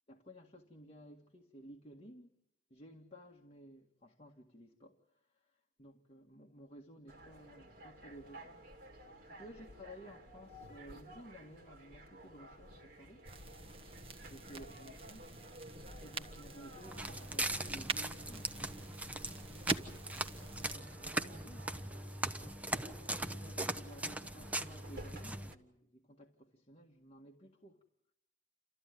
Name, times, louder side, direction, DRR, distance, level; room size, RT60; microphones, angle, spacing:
voice 1, 0.1-2.4 2.7-8.6 9.2-13.2 14.2-15.4 15.6-21.7 22.4-27.8, equal, 35° left, 1.9 m, -56 dB
sound 1, 7.1-25.6, right 1 dB, 55° right, 3.0 m, -55 dB
sound 2, 13.2-20.8, right 4 dB, 35° right, 1.4 m, -45 dB
Walk footsteps, 16.9-25.5, right 1 dB, 10° right, 0.9 m, -40 dB
29.0 x 14.0 x 9.5 m
head